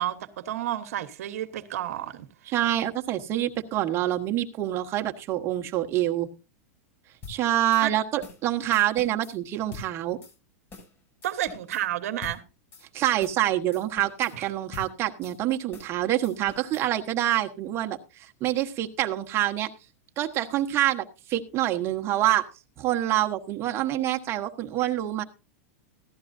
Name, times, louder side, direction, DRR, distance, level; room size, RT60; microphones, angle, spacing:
voice 1, 0.0-2.2 7.8-7.9 11.2-12.4 14.3-14.5, right 13 dB, 75° right, 1.2 m, -31 dB
voice 2, 2.5-6.3 7.3-10.2 12.9-19.7 20.2-22.4 22.8-25.2, right 13 dB, 30° right, 1.3 m, -26 dB
sound 1, 7.2-7.4 7.7-7.8 8.2-8.4 8.7-9.3 9.7-9.9 10.2-10.3 10.7-10.9 11.2-11.8 12.2-12.4 12.7-12.8 13.2-13.4 13.7-14.3 14.7-14.9 15.2-15.4 15.7-15.9 16.2-16.9, left 4 dB, 25° left, 7.7 m, -44 dB
16.0 x 12.0 x 2.7 m
supercardioid pair, 145°, 8 cm